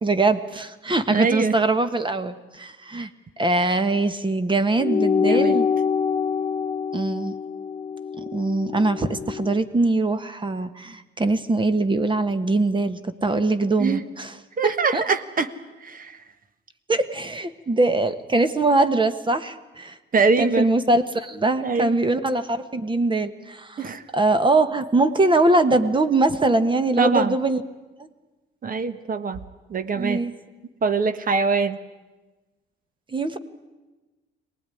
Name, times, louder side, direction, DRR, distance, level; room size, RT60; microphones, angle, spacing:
voice 1, 0.0-3.1 3.4-5.7 6.9-7.3 8.2-14.4 14.6-15.0 16.9-20.0 20.4-27.6 28.0-28.1 29.9-30.3 33.1-33.4, right 2 dB, 25° right, 11 dB, 1.4 m, -22 dB
voice 2, 1.1-1.5 5.2-5.6 13.8-14.0 14.6-15.5 15.8-16.2 20.1-20.7 21.6-22.0 23.8-24.0 27.0-27.3 28.6-29.4 29.7-30.2 30.8-31.8, right 4 dB, 45° right, 12 dB, 1.5 m, -23 dB
sound 1, 4.8-9.6, left 6 dB, 35° left, 1.3 m, -25 dB
23.0 x 19.0 x 10.0 m, 1.2 s
cardioid pair, 90°, 20 cm